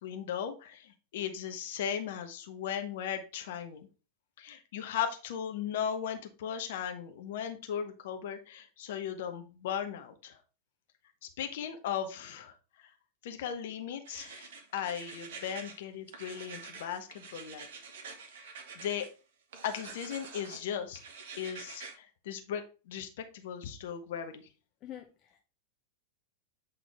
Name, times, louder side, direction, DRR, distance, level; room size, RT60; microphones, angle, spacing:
voice 1, 0.0-3.9 4.4-10.4 11.4-12.5 13.2-17.7 18.7-19.1 19.6-21.0 21.4-24.5, left 8 dB, 55° left, 0.9 m, -37 dB
sound 1, 14.1-15.8 16.1-19.1 19.5-20.6 20.9-21.9, right 5 dB, 55° right, 1.0 m, -47 dB
voice 2, 24.8-25.4, left 11 dB, 35° left, 0.5 m, -46 dB
8.0 x 3.7 x 3.5 m
figure-of-eight pair, 90°, 0 cm